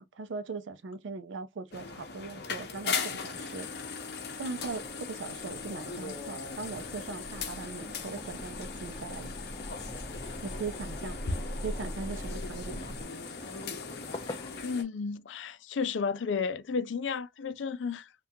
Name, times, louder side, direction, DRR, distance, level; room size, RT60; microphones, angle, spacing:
voice 1, 0.0-3.7 4.4-9.3 10.2-11.2 11.6-13.0, right 4 dB, 85° right, 0.5 m, -40 dB
sound 1, 1.7-14.8, left 5 dB, 55° left, 0.7 m, -39 dB
sound 2, 4.6-13.0, equal, 5° left, 0.8 m, -43 dB
sound 3, 8.1-14.6, left 2 dB, 25° left, 0.4 m, -46 dB
voice 2, 14.6-18.1, left 5 dB, 85° left, 0.4 m, -32 dB
3.5 x 2.4 x 2.7 m
head